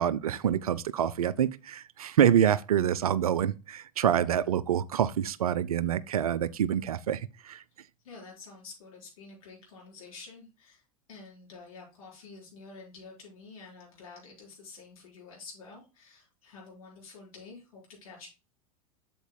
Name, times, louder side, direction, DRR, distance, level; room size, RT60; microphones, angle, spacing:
voice 1, 0.0-7.6, right 9 dB, 70° right, 0.5 m, -26 dB
voice 2, 8.0-10.8 11.1-18.3, left 4 dB, 65° left, 4.2 m, -49 dB
8.0 x 7.7 x 2.2 m
figure-of-eight pair, 85°, 19 cm